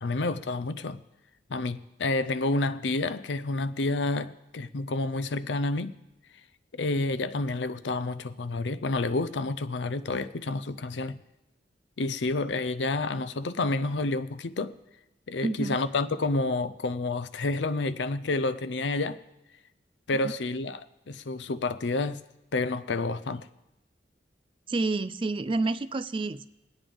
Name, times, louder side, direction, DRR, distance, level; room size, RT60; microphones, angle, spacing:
voice 1, 0.0-1.0 1.5-5.9 6.7-11.2 12.0-14.7 15.3-19.2 20.1-22.2 22.5-23.5, left 2 dB, 85° left, 0.6 m, -29 dB
voice 2, 15.4-15.8 20.2-20.3 24.7-26.5, right 3 dB, 30° right, 0.4 m, -29 dB
22.0 x 9.0 x 3.5 m
head